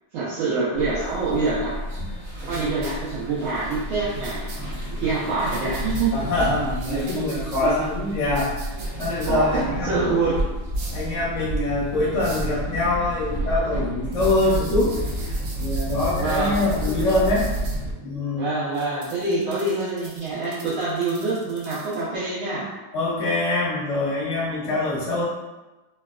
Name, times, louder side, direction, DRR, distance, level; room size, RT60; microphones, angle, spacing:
voice 1, 0.1-1.7 2.5-4.5 4.9-6.5 6.9-7.2 7.6-7.8 9.3-10.4 16.2-16.7 18.4-22.7, right 3 dB, 90° right, -10 dB, 1.6 m, -26 dB
sound 1, 0.7-17.9, right 1 dB, 45° right, 1.0 m, -30 dB
sound 2, 2.8-2.9 4.2-4.6 5.5-6.0 6.8-7.6 8.4-9.3 10.7-11.1 12.2-12.5 14.1-17.8 18.7-22.0, right 3 dB, 70° right, 1.2 m, -42 dB
voice 2, 6.1-8.6 9.0-10.3 10.9-15.0 15.6-17.5 18.0-18.5 22.9-25.2, left 2 dB, 65° left, -6 dB, 0.7 m, -24 dB
3.8 x 2.3 x 2.3 m, 1.1 s
omnidirectional pair, 2.3 m